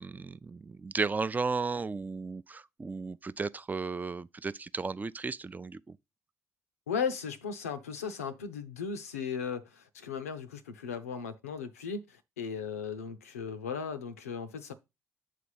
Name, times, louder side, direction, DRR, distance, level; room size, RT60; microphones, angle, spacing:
voice 1, 0.0-6.0, right 4 dB, 20° right, 0.4 m, -34 dB
voice 2, 6.9-14.7, left 6 dB, 90° left, 0.6 m, -36 dB
7.4 x 3.4 x 5.5 m
hypercardioid pair, 45°, 8 cm